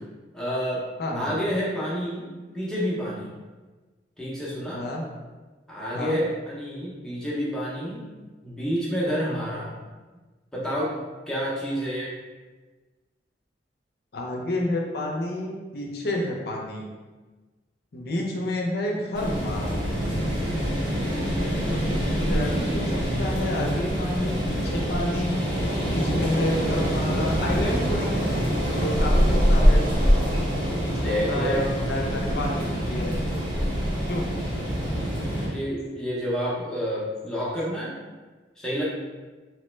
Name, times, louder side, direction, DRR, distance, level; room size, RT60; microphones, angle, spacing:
voice 1, 0.3-0.8 1.1-3.4 4.2-4.8 5.7-8.1 8.4-9.7 10.5-10.9 11.3-12.1 30.9-31.6 35.4-37.9 38.6-38.8, equal, 5° left, -7 dB, 0.6 m, -29 dB
voice 2, 1.0-1.3 4.7-5.1 5.9-6.2 14.1-16.9 17.9-19.8 21.2-25.4 25.8-28.4 28.7-29.9 30.7-33.2 34.1-34.3, left 1 dB, 60° left, -1 dB, 0.5 m, -30 dB
sound 1, 19.1-35.5, equal, 25° right, 0.8 m, -24 dB
2.9 x 2.0 x 3.2 m, 1.3 s
head